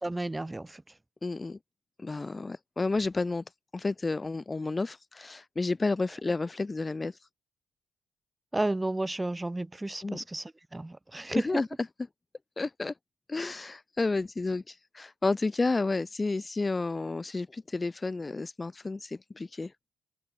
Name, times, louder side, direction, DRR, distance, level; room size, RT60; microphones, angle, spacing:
voice 1, 0.0-0.8 8.5-11.4, right 2 dB, 15° right, 2.5 m, -32 dB
voice 2, 1.2-1.6 2.0-3.4 3.7-7.2 10.0-10.2 11.3-11.7 12.6-12.9 13.3-19.7, left 3 dB, 25° left, 1.4 m, -31 dB
cardioid pair, 90°, 0 cm